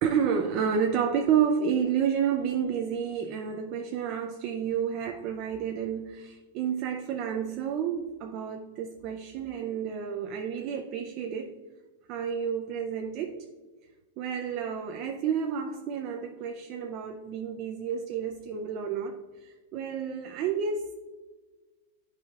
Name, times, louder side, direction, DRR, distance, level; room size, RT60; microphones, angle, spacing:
voice 1, 0.0-11.5 12.1-13.5 14.2-20.9, right 7 dB, 35° right, 4 dB, 0.5 m, -30 dB
10.5 x 4.9 x 2.4 m, 1.3 s
supercardioid pair, 165°, 0 cm